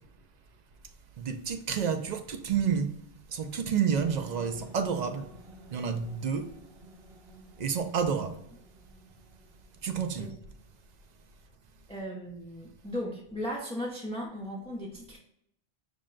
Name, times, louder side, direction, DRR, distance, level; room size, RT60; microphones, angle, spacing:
voice 1, 1.2-3.0 3.3-5.3 5.7-6.5 7.6-8.4 9.8-10.3, right 7 dB, 55° right, 0.5 m, -30 dB
sound 1, 3.9-11.2, right 1 dB, 75° right, 1.2 m, -53 dB
voice 2, 11.9-15.2, equal, 5° left, 0.6 m, -36 dB
5.2 x 2.1 x 3.7 m
omnidirectional pair, 1.0 m